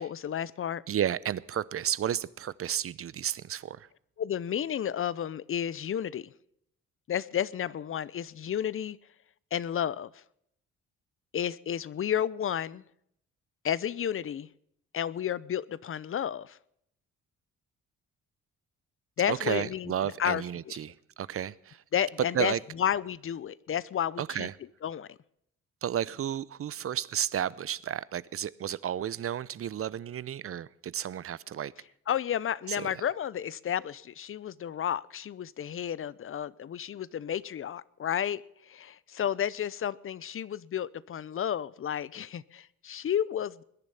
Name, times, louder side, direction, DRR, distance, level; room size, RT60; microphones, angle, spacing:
voice 1, 0.0-0.8 4.2-6.3 7.1-9.0 9.5-10.2 11.3-12.8 13.6-14.5 14.9-16.6 19.2-20.8 21.9-24.5 24.8-25.2 32.1-43.6, left 9 dB, 45° left, 0.7 m, -32 dB
voice 2, 0.9-3.9 19.3-21.8 22.3-22.6 24.2-24.5 25.8-31.7 32.7-32.9, right 10 dB, 50° right, 0.7 m, -32 dB
20.5 x 10.5 x 5.6 m
cardioid pair, 90°, 30 cm